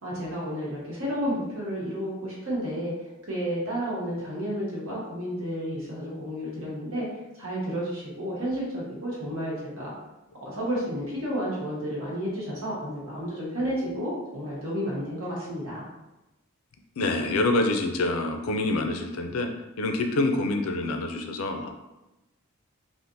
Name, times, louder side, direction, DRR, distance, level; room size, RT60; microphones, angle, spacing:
voice 1, 0.0-7.1 7.4-9.9 10.4-15.9, equal, 90° right, -6 dB, 1.3 m, -31 dB
voice 2, 17.0-19.5 19.8-21.7, left 2 dB, 80° left, 4 dB, 0.4 m, -26 dB
3.6 x 2.5 x 2.7 m, 1.0 s
head